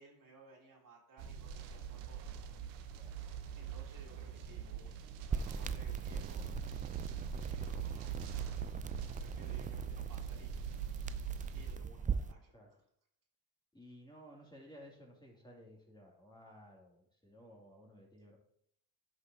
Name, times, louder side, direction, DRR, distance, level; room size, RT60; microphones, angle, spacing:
voice 1, 0.0-2.6 3.6-5.0 5.3-6.4 7.3-8.3 9.2-10.6 11.5-12.5, right 3 dB, 40° right, -1 dB, 3.2 m, -59 dB
sound 1, 1.2-11.8, right 7 dB, 80° right, 1.1 m, -42 dB
sound 2, 5.3-12.3, right 5 dB, 20° right, 0.3 m, -41 dB
voice 2, 13.7-18.4, equal, 10° left, -2 dB, 2.5 m, -56 dB
11.5 x 5.7 x 2.8 m, 0.70 s
hypercardioid pair, 65°, 48 cm